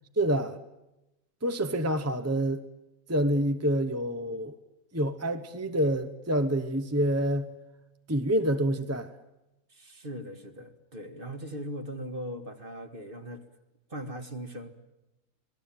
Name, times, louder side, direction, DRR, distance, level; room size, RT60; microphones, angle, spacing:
voice 1, 0.2-0.6 1.4-2.6 3.1-4.5 4.9-7.5 8.1-9.1, right 1 dB, 15° right, 0.6 m, -27 dB
voice 2, 9.7-13.4 13.9-14.7, equal, 30° right, 2.0 m, -39 dB
26.0 x 19.0 x 9.0 m
omnidirectional pair, 1.9 m